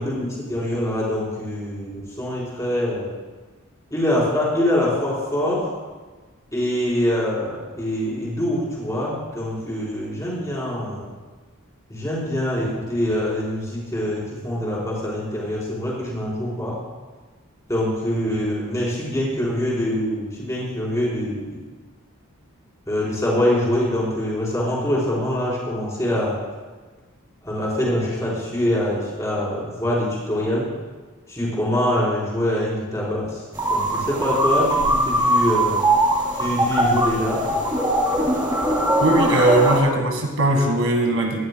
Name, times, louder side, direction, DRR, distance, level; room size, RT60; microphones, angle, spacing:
voice 1, 0.0-3.1 3.9-5.7 6.5-11.1 11.9-16.8 17.7-21.6 22.9-26.4 27.4-30.7 31.3-35.8 36.3-37.4, left 1 dB, 15° left, -6 dB, 4.0 m, -24 dB
sound 1, 33.5-39.8, right 1 dB, 15° right, 2.3 m, -21 dB
voice 2, 39.0-41.5, right 1 dB, 70° right, 2 dB, 1.5 m, -19 dB
19.0 x 11.5 x 2.2 m, 1.3 s
head